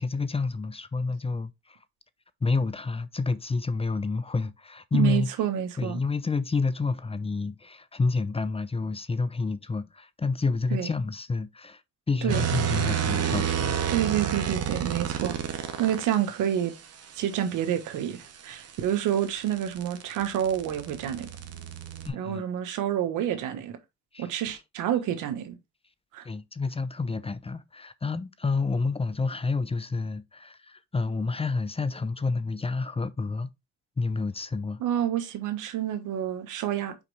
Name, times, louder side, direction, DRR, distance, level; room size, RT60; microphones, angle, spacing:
voice 1, 0.0-1.8 2.4-5.3 5.8-11.8 12.1-13.8 22.1-22.4 24.1-24.3 26.2-33.5 34.0-34.8, left 4 dB, 20° left, 0.6 m, -29 dB
voice 2, 4.9-6.0 10.7-10.9 12.2-12.4 13.9-15.4 15.8-16.7 17.2-21.3 22.1-23.8 24.2-25.6 26.1-26.2 34.8-37.0, right 10 dB, 90° right, 1.3 m, -28 dB
sound 1, 12.3-16.2 18.4-22.1, right 9 dB, 55° right, 1.3 m, -30 dB
5.7 x 5.2 x 3.3 m
cardioid pair, 90°, 30 cm